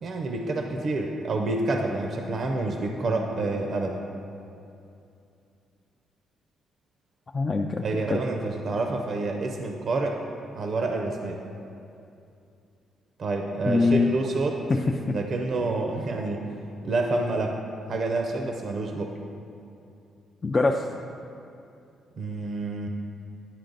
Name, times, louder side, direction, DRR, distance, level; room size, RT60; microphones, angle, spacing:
voice 1, 0.0-4.0 7.8-10.2 10.5-11.4 13.2-14.6 15.1-16.4 16.8-17.6 17.9-19.1 22.2-22.9, right 2 dB, 55° right, 3 dB, 0.6 m, -28 dB
voice 2, 7.3-8.2 13.6-14.2 14.7-15.2 20.4-20.9, left 3 dB, 30° left, 2 dB, 0.3 m, -24 dB
10.5 x 4.4 x 3.9 m, 2.6 s
cardioid pair, 90°, 0 cm